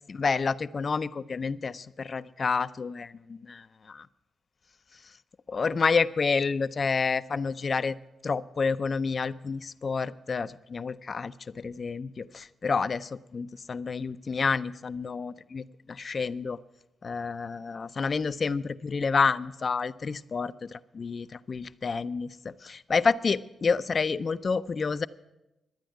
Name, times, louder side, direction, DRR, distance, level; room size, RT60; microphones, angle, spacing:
voice 1, 0.1-4.0 5.5-7.9 8.2-15.6 15.9-16.6 17.0-25.1, left 5 dB, 50° left, 14 dB, 0.5 m, -29 dB
11.5 x 9.0 x 9.2 m, 0.96 s
cardioid pair, 60°, 0 cm